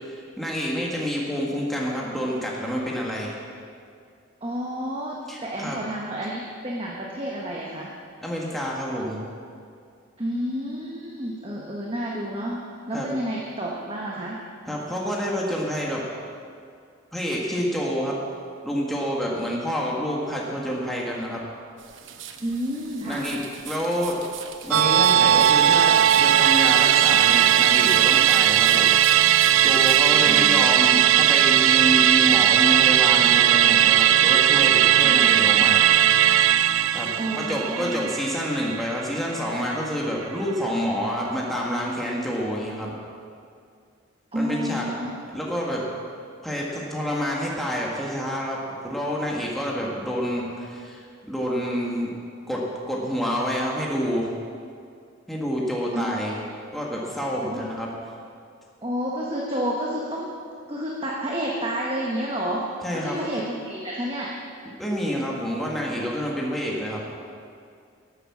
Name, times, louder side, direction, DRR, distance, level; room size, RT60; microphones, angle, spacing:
voice 1, 0.0-3.3 5.3-5.8 8.2-9.2 12.9-13.1 14.7-16.0 17.1-18.2 18.6-21.4 23.0-24.2 24.6-28.9 29.3-35.8 36.9-37.1 37.3-42.9 44.3-45.0 45.3-45.9 46.4-52.1 52.5-54.3 55.3-56.4 56.7-57.9 62.8-63.2 64.8-67.0, equal, ahead, -4 dB, 1.6 m, -28 dB
voice 2, 4.4-7.9 10.2-14.4 22.4-23.3 30.2-31.2 35.0-35.5 37.2-38.0 44.3-45.1 55.9-56.2 57.4-57.6 58.8-60.3 60.7-62.6 62.9-64.3, equal, 25° right, -3 dB, 1.2 m, -30 dB
sound 1, 21.8-30.1, right 9 dB, 65° right, 0.9 m, -41 dB
Musical instrument, 24.7-39.4 39.7-39.8, right 11 dB, 80° right, 0.4 m, -18 dB
11.5 x 9.5 x 7.3 m, 2.3 s
head